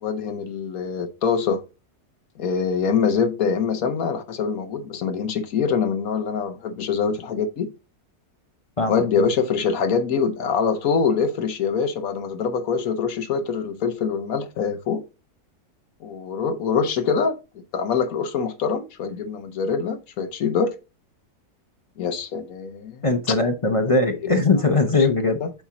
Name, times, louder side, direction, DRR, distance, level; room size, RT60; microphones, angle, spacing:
voice 1, 0.0-1.6 2.4-7.7 8.9-15.0 16.0-17.4 17.7-20.7 22.0-23.1 25.4-25.5, left 6 dB, 65° left, 1.2 m, -24 dB
voice 2, 8.8-9.3 23.0-25.4, left 3 dB, 35° left, 0.5 m, -20 dB
8.1 x 4.4 x 3.7 m
omnidirectional pair, 1.7 m